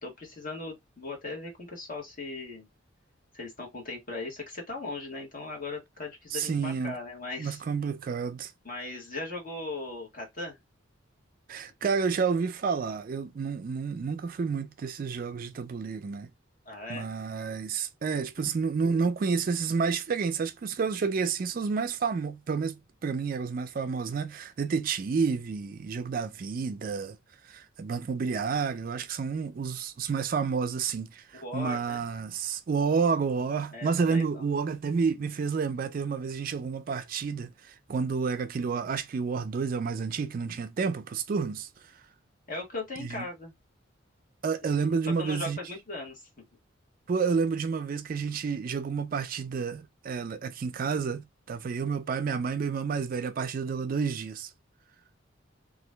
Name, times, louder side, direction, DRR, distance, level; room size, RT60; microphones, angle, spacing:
voice 1, 0.0-2.7 3.3-7.6 8.6-10.6 16.6-17.1 31.3-32.0 33.7-34.5 42.5-43.5 45.2-46.4, left 2 dB, 45° left, 1.4 m, -38 dB
voice 2, 6.3-7.0 7.4-8.5 11.5-16.3 16.9-27.2 27.4-42.0 43.0-43.2 44.4-45.6 47.1-54.5, right 5 dB, 45° right, 0.3 m, -30 dB
2.9 x 2.4 x 3.2 m
head